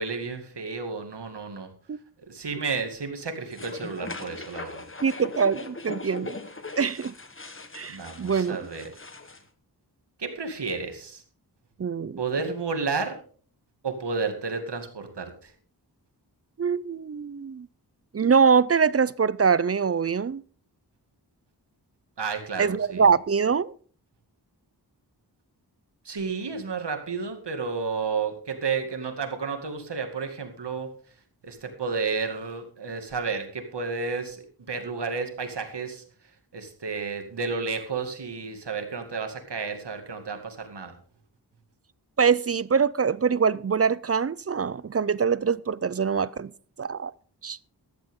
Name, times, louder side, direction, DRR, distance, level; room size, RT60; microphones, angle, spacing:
voice 1, 0.0-1.7 2.3-4.8 7.9-8.9 10.2-11.2 12.2-13.2 13.8-15.5 22.2-23.1 26.1-30.9 31.4-36.0 36.5-40.9, right 4 dB, 85° right, 2.3 m, -31 dB
sound 1, 3.5-9.4, left 3 dB, 30° left, 1.4 m, -39 dB
voice 2, 5.0-6.4 6.8-7.1 7.7-8.6 11.8-12.2 16.6-17.7 18.1-20.4 22.6-23.7 42.2-46.5 46.8-47.1 47.4-47.7, right 6 dB, 35° right, 0.4 m, -24 dB
14.5 x 12.0 x 3.7 m
wide cardioid pair, 90°, 40 cm